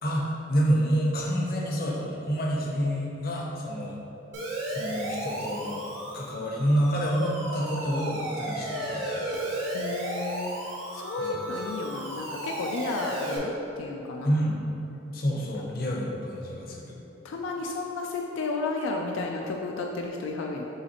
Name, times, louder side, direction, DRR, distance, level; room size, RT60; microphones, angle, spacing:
voice 1, 0.0-4.0 4.7-9.2 11.2-11.4 14.2-14.6 15.1-16.9, equal, 50° left, -2 dB, 0.6 m, -28 dB
Siren, 4.3-13.4, right 1 dB, 85° right, 0.8 m, -34 dB
voice 2, 9.7-10.5 10.9-14.3 17.2-20.7, left 3 dB, 85° left, 0 dB, 0.3 m, -32 dB
5.5 x 3.1 x 2.9 m, 3.0 s
head